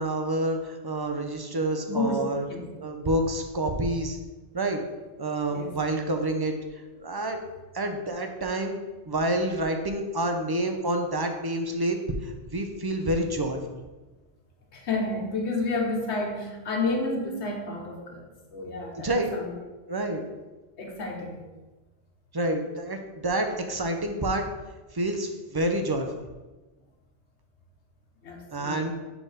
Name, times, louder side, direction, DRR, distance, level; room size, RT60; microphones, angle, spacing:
voice 1, 0.0-2.4 2.8-4.2 4.5-4.8 5.2-6.5 7.0-7.4 7.7-8.8 9.1-13.8 19.0-19.3 19.9-20.2 22.3-24.4 24.9-26.2 28.5-28.9, right 1 dB, 35° right, 5 dB, 0.4 m, -28 dB
voice 2, 1.9-2.2 2.5-2.7 5.5-5.8 14.7-19.5 20.8-21.4 28.2-28.9, left 2 dB, 75° left, 1 dB, 1.3 m, -30 dB
4.8 x 4.4 x 4.9 m, 1.2 s
omnidirectional pair, 1.2 m